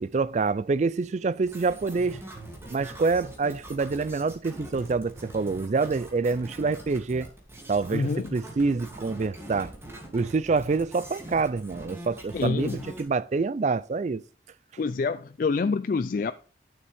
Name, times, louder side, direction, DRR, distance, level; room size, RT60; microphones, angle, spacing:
voice 1, 0.0-2.2 2.7-7.3 7.7-9.7 10.1-12.7 13.0-14.2, right 4 dB, 40° right, 0.4 m, -26 dB
sound 1, 1.4-13.0, right 1 dB, 15° right, 2.6 m, -43 dB
voice 2, 7.9-8.4 12.3-12.8 14.8-16.3, left 4 dB, 50° left, 0.3 m, -27 dB
11.5 x 6.9 x 3.5 m
head